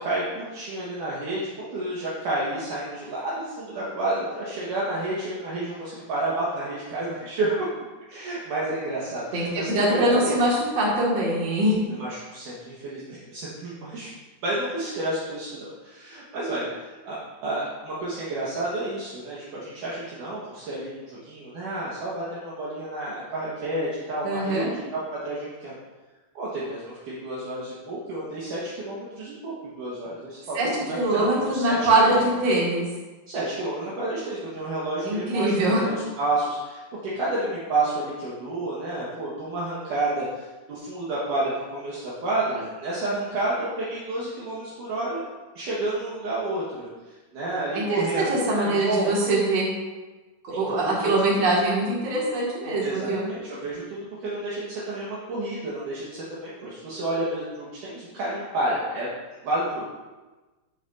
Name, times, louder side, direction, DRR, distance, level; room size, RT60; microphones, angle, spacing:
voice 1, 0.0-7.7 8.1-10.4 11.9-14.1 14.4-25.8 26.3-32.2 33.3-36.8 37.1-45.2 45.6-48.3 48.5-49.1 50.5-51.2 52.8-59.1 59.4-59.9, right 2 dB, 65° right, -8 dB, 2.9 m, -30 dB
voice 2, 9.3-11.8 24.2-24.7 30.5-32.9 35.0-35.8 47.7-49.7 50.4-53.3, right 1 dB, 45° right, -4 dB, 3.1 m, -23 dB
13.0 x 8.4 x 2.8 m, 1.2 s
omnidirectional pair, 4.3 m